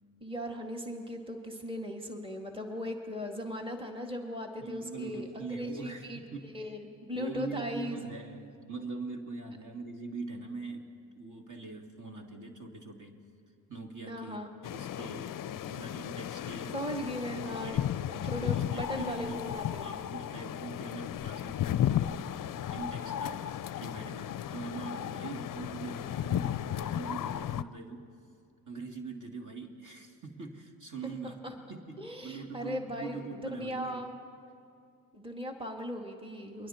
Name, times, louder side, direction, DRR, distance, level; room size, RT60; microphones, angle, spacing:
voice 1, 0.2-6.2 6.5-8.0 14.1-14.5 16.7-17.8 18.0-20.0 31.4-31.5 32.0-33.2 33.5-34.1 35.1-36.7, equal, 10° right, 2 dB, 2.1 m, -38 dB
voice 2, 4.6-6.5 7.2-10.9 11.1-13.2 13.7-16.8 17.4-18.0 18.4-19.4 19.8-22.2 22.7-28.1 28.7-31.4 31.7-34.0, right 3 dB, 40° right, 2 dB, 2.6 m, -42 dB
sound 1, 14.6-27.6, left 11 dB, 45° left, 0.6 m, -34 dB
28.5 x 22.0 x 4.4 m, 2.5 s
supercardioid pair, 55°, 47 cm